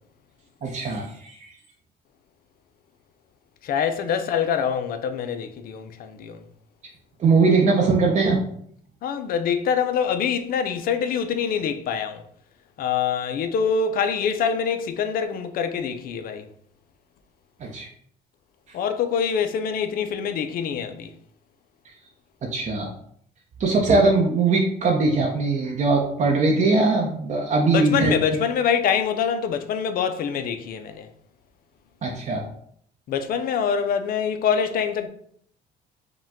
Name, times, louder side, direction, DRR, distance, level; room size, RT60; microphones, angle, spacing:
voice 1, 0.6-1.4 7.2-8.4 17.6-17.9 22.5-22.9 23.6-28.1 32.0-32.4, right 3 dB, 45° right, 0.7 m, -20 dB
voice 2, 3.6-6.4 9.0-12.2 12.8-16.5 18.7-21.1 27.7-31.1 33.1-35.1, left 7 dB, 60° left, 0.5 m, -25 dB
5.0 x 2.3 x 3.6 m
cardioid pair, 110°, 17 cm